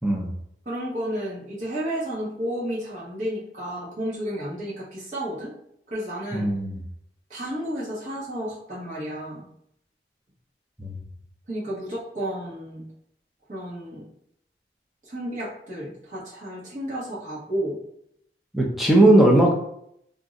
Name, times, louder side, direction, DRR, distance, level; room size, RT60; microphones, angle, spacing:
voice 1, 0.6-5.5 5.9-6.5 7.3-9.5 11.5-12.8 13.5-14.0 15.1-17.8, equal, 45° right, -8 dB, 0.8 m, -32 dB
voice 2, 6.3-6.8 10.8-10.9 18.5-19.5, right 1 dB, ahead, -2 dB, 0.5 m, -18 dB
2.6 x 2.0 x 3.6 m, 0.73 s
head